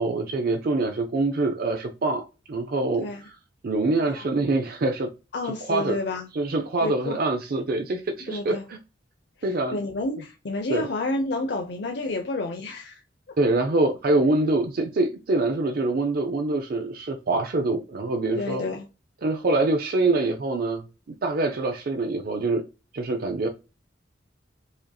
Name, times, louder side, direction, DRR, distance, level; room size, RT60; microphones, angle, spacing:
voice 1, 0.0-3.4 3.6-5.1 5.4-6.0 6.3-8.8 9.4-9.8 10.7-10.9 13.4-18.6 19.2-20.8 21.2-22.6 22.9-23.5, right 2 dB, 50° right, 0.5 m, -25 dB
voice 2, 5.3-6.3 6.8-7.2 8.3-8.6 9.7-13.0 18.4-18.9, left 2 dB, 60° left, 0.6 m, -30 dB
4.9 x 2.7 x 2.2 m
head